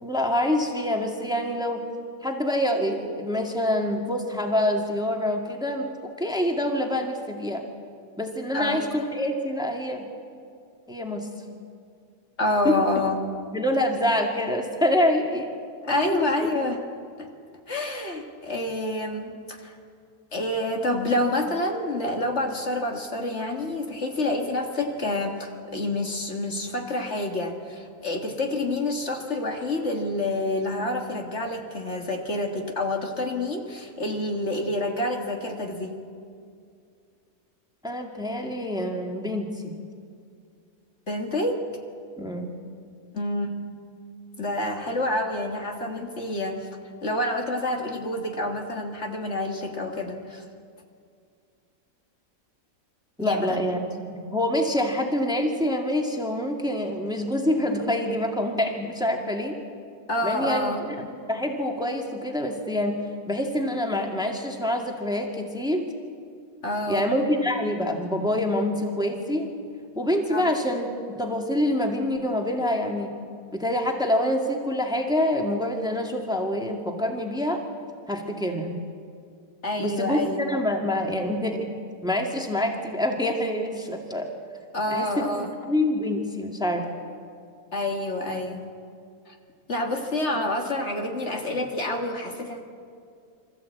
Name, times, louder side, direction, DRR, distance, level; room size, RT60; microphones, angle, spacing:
voice 1, 0.0-1.8 2.2-7.6 8.2-10.1 10.9-11.3 12.6-12.8 13.5-15.5 15.9-16.5 37.8-39.7 42.2-42.5 53.2-53.8 54.1-59.6 60.2-63.0 63.3-65.9 66.9-69.5 70.0-70.9 71.2-73.1 73.5-77.6 78.1-78.8 79.8-81.7 82.0-84.3 84.9-86.8, left 1 dB, 5° right, 2 dB, 1.9 m, -26 dB
voice 2, 12.4-13.3 15.9-16.8 17.7-19.7 20.3-36.0 41.1-41.6 43.1-43.5 44.4-46.7 47.0-50.4 53.2-53.6 60.1-60.8 66.6-67.1 70.3-70.5 79.6-80.4 84.7-85.5 87.7-88.7 89.3-89.4 89.7-92.6, left 1 dB, 50° left, 3 dB, 2.0 m, -28 dB
26.0 x 14.5 x 8.4 m, 2.3 s
omnidirectional pair, 1.5 m